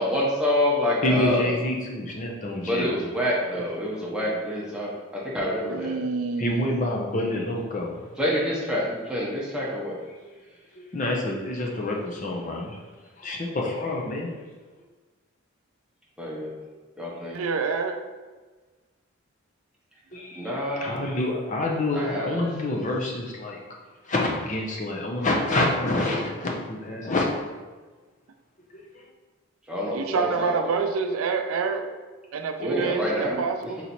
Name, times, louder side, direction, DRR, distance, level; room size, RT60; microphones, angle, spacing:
voice 1, 0.0-1.4 2.6-5.9 8.2-10.0 16.2-16.5 17.0-17.4 20.4-21.0 21.9-22.4 29.7-30.8 32.6-33.7, left 1 dB, 5° right, -5 dB, 0.8 m, -27 dB
voice 2, 1.0-2.9 6.4-8.1 10.3-10.4 10.7-12.8 13.2-14.3 20.1-20.5 20.8-23.6 24.0-27.4 28.7-29.0, left 1 dB, 35° left, -1 dB, 0.7 m, -27 dB
voice 3, 5.7-6.6 17.3-18.0 29.9-31.9 32.3-33.8, right 5 dB, 90° right, 6 dB, 0.4 m, -27 dB
4.0 x 3.1 x 4.2 m, 1.3 s
head